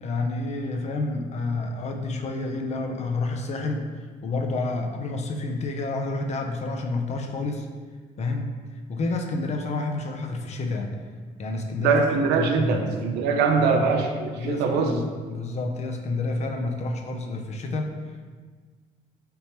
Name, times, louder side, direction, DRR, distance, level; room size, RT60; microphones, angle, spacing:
voice 1, 0.0-3.9 4.2-7.7 8.2-8.5 8.9-10.9 11.4-12.9 13.6-13.9 14.4-17.9, left 3 dB, 40° left, 3 dB, 0.5 m, -29 dB
voice 2, 11.8-14.9, right 5 dB, 90° right, 3 dB, 0.5 m, -22 dB
3.4 x 2.9 x 4.4 m, 1.5 s
cardioid pair, 110°, 17 cm